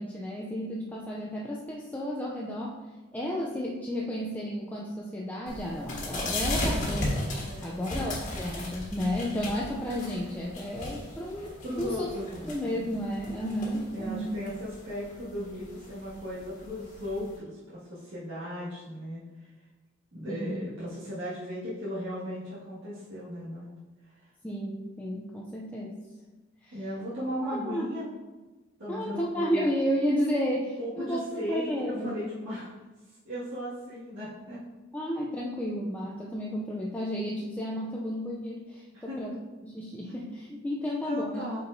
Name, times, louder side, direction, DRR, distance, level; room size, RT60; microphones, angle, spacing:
voice 1, 0.0-2.8 3.1-7.1 7.6-12.1 12.5-14.3 20.3-20.7 24.4-26.0 26.6-26.8 27.4-27.9 28.9-32.1 34.9-39.4 39.6-41.5, equal, 10° left, -4 dB, 0.5 m, -32 dB
sound 1, 5.5-17.3, left 1 dB, 40° left, 1.5 m, -36 dB
voice 2, 7.4-8.0 11.6-12.6 13.9-19.5 20.1-23.7 24.2-24.3 26.7-28.0 28.8-29.7 30.8-32.7 33.1-34.6 38.9-39.4 40.8-41.6, equal, 65° right, -11 dB, 1.8 m, -37 dB
7.7 x 4.5 x 2.7 m, 1.2 s
head